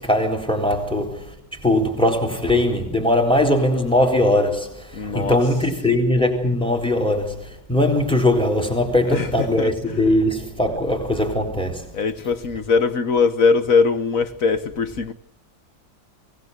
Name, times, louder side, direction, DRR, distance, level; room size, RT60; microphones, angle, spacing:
voice 1, 0.0-11.9, left 1 dB, 5° left, 4.0 m, -20 dB
voice 2, 4.9-5.4 9.0-10.1 11.9-15.1, left 4 dB, 55° left, 1.8 m, -21 dB
24.5 x 18.0 x 8.2 m
omnidirectional pair, 1.8 m